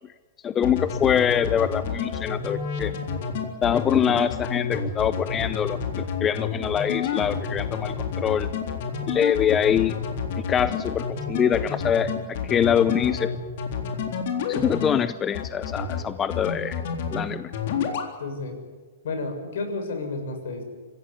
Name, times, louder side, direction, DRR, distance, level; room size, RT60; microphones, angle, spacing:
voice 1, 0.4-2.9 3.6-8.5 9.1-10.0 10.4-13.3 14.5-16.8 17.1-17.5, left 8 dB, 15° left, 13 dB, 0.6 m, -24 dB
sound 1, 0.6-15.0 15.3-16.0 16.3-17.2 17.5-18.1, left 6 dB, 50° left, 3.8 m, -29 dB
voice 2, 18.2-18.6 19.0-20.6, left 3 dB, 70° left, 6 dB, 6.8 m, -31 dB
26.0 x 16.0 x 10.0 m, 1.4 s
hypercardioid pair, 160°, 0 cm